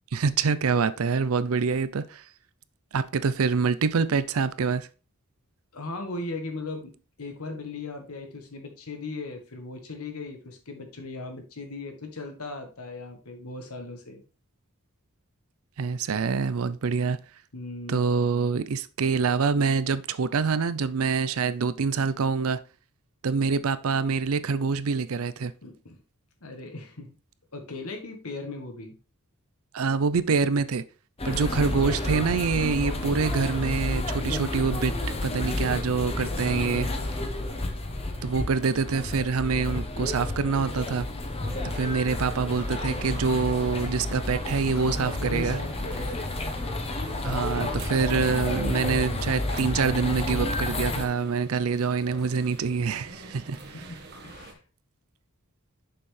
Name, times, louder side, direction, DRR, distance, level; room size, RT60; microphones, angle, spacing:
voice 1, 0.1-2.2 2.9-4.9 15.8-17.2 17.9-22.6 23.2-25.5 29.7-30.8 31.2-36.9 38.2-41.1 41.7-45.6 47.2-54.0, right 5 dB, 70° right, 0.5 m, -26 dB
voice 2, 5.7-6.9 7.2-14.2 17.5-18.1 25.6-26.0 26.4-27.1 27.5-29.0 31.3-31.7 36.4-37.4 44.7-46.2 53.7-54.0 54.2-54.6, left 3 dB, 75° left, 1.4 m, -38 dB
sound 1, 31.2-51.1, left 2 dB, 25° left, 0.9 m, -30 dB
sound 2, 41.4-54.5, right 3 dB, 45° right, 1.3 m, -46 dB
6.7 x 5.6 x 3.2 m
head